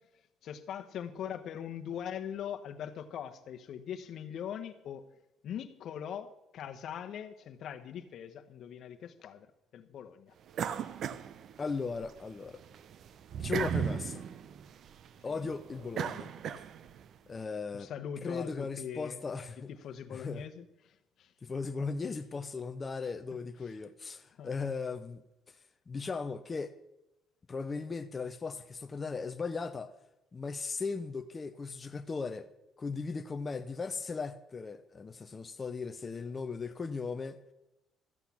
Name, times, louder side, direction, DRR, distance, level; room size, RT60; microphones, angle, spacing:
voice 1, 0.4-5.1 5.4-9.5 9.7-10.3 15.2-15.5 17.7-19.2 19.8-20.6 21.2-21.3 24.4-24.5, left 9 dB, 55° left, 1.1 m, -41 dB
sound 1, 10.5-12.1 12.5-17.1, right 8 dB, 55° right, 0.6 m, -37 dB
voice 2, 11.6-12.6 13.4-14.2 15.2-16.3 17.3-17.9 18.2-19.7 20.1-20.5 21.4-25.2 25.9-26.7 27.5-29.9 30.3-32.5 32.8-37.4, left 4 dB, 25° left, 0.6 m, -37 dB
13.5 x 8.3 x 7.1 m
cardioid pair, 125°, 0 cm